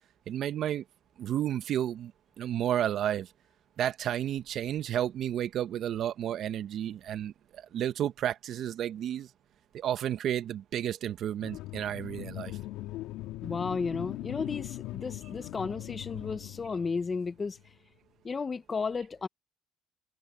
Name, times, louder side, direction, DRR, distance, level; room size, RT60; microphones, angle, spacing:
voice 1, 0.3-0.8 1.2-2.1 2.4-3.3 3.8-9.3 9.7-12.6, right 11 dB, 55° right, 1.3 m, -32 dB
sound 1, 11.4-17.7, left 16 dB, 75° left, 3.3 m, -40 dB
voice 2, 13.4-17.6 18.2-19.3, left 4 dB, 30° left, 1.2 m, -33 dB
cardioid pair, 100°, 0 cm